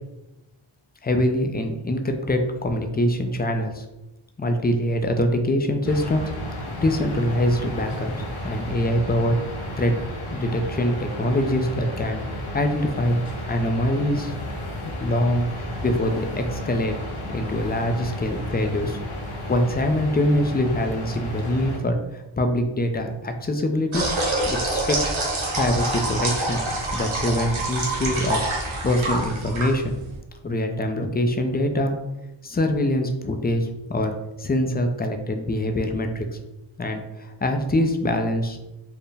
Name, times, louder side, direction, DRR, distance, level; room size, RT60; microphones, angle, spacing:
voice 1, 1.0-3.8 4.4-9.4 9.8-9.9 10.3-12.2 12.5-14.3 15.0-15.5 15.8-16.9 17.3-19.0 19.5-22.0 22.4-24.0 24.5-25.0 25.5-26.6 26.9-28.4 28.8-30.0 30.4-31.9 32.4-34.1 34.4-36.3 36.8-38.6, left 1 dB, 20° left, 5 dB, 0.4 m, -24 dB
sound 1, 5.8-21.8, left 1 dB, 85° left, 0.8 m, -33 dB
sound 2, 23.9-30.2, right 2 dB, 75° right, 1.1 m, -26 dB
4.4 x 2.1 x 3.3 m, 0.98 s
wide cardioid pair, 80°, 48 cm